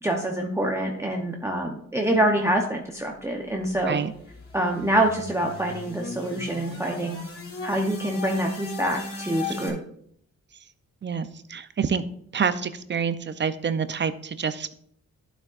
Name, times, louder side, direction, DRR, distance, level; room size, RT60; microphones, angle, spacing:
voice 1, 0.0-4.0 4.5-7.2 7.6-9.8, right 1 dB, 10° right, 0 dB, 0.8 m, -26 dB
sound 1, 3.3-9.7, left 3 dB, 50° left, 2.4 m, -37 dB
voice 2, 9.4-9.8 11.0-12.0 12.3-14.7, right 6 dB, 40° right, 12 dB, 0.5 m, -27 dB
11.5 x 7.6 x 2.5 m, 0.66 s
wide cardioid pair, 130°, 30 cm